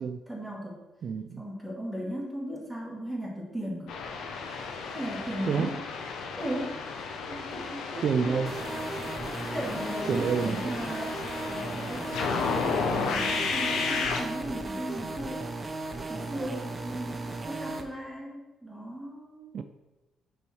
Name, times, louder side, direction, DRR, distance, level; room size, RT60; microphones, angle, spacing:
voice 1, 0.3-0.8 1.4-4.0 4.9-5.8 6.4-6.8 7.2-8.4 9.5-11.2 11.5-15.4 16.1-19.5, equal, 5° left, -4 dB, 2.1 m, -37 dB
voice 2, 1.0-1.4 5.5-5.8 8.0-8.6 10.1-10.7 19.5-19.6, right 6 dB, 55° right, 8 dB, 0.4 m, -28 dB
sound 1, 3.9-14.2, left 5 dB, 85° left, 0.8 m, -33 dB
sound 2, 8.5-17.8, right 2 dB, 25° right, 0.7 m, -36 dB
5.4 x 4.4 x 4.5 m, 1.1 s
cardioid pair, 90°, 0 cm